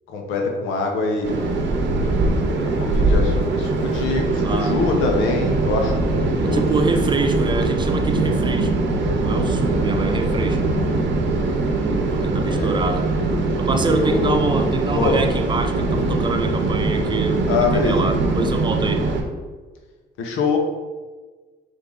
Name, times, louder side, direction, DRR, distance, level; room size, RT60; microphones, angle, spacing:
voice 1, 0.1-1.4 2.6-6.6 7.1-7.3 12.5-12.7 13.9-14.6 14.9-15.2 17.5-18.0 20.2-20.6, left 3 dB, 90° left, 2 dB, 0.8 m, -24 dB
sound 1, 1.2-19.2, right 2 dB, 65° right, 0.7 m, -22 dB
voice 2, 4.4-4.8 6.4-8.7 9.2-10.6 12.1-13.1 13.6-19.0, right 3 dB, 25° right, 6 dB, 0.5 m, -25 dB
4.6 x 2.6 x 3.8 m, 1.4 s
cardioid pair, 90°, 20 cm